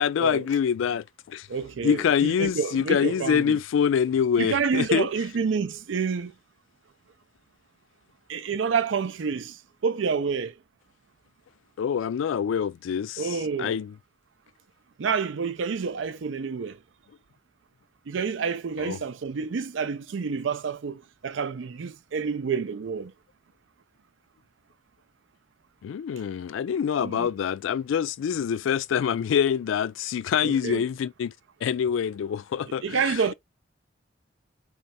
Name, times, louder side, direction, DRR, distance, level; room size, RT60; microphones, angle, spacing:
voice 1, 0.0-1.5 1.8-5.1 11.8-13.9 18.8-19.0 25.8-31.3 31.6-33.3, left 7 dB, 85° left, 0.3 m, -25 dB
voice 2, 1.5-3.6 4.4-6.3 8.3-9.6 9.8-10.5 13.2-13.8 15.0-16.8 18.1-23.1 27.0-27.3 30.4-30.9 32.8-33.3, right 5 dB, 70° right, 0.5 m, -28 dB
3.3 x 3.2 x 4.1 m
head